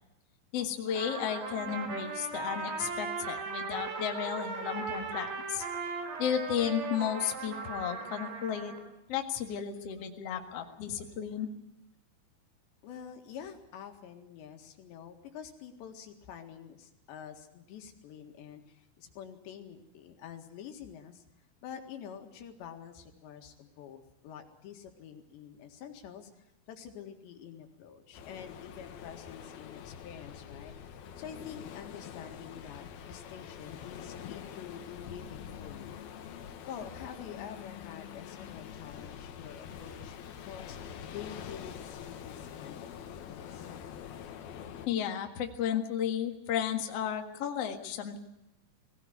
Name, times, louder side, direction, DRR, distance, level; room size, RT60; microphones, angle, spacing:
voice 1, 0.5-5.6 6.2-8.7 9.1-11.5 44.9-48.2, left 9 dB, 50° left, 4 dB, 2.1 m, -33 dB
Trumpet, 1.0-8.8, right 4 dB, 75° right, 5.4 m, -38 dB
voice 2, 12.8-21.2 21.6-30.7 31.2-36.0 36.7-43.7, left 8 dB, 85° left, 5 dB, 4.2 m, -47 dB
sound 1, 28.1-44.9, left 8 dB, 65° left, 3.1 m, -45 dB
21.0 x 17.5 x 9.5 m, 0.89 s
omnidirectional pair, 5.0 m